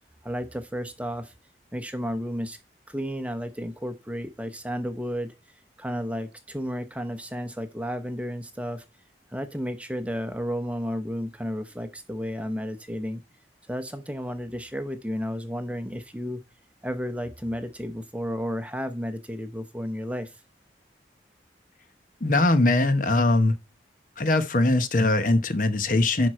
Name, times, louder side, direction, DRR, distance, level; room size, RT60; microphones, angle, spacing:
voice 1, 0.2-1.3 1.7-2.6 2.9-5.3 5.8-8.8 9.3-13.2 13.7-16.4 16.8-20.4, equal, 10° right, 0.8 m, -32 dB
voice 2, 22.2-23.5 24.2-26.3, left 2 dB, 50° left, 1.0 m, -21 dB
11.0 x 4.6 x 4.3 m
head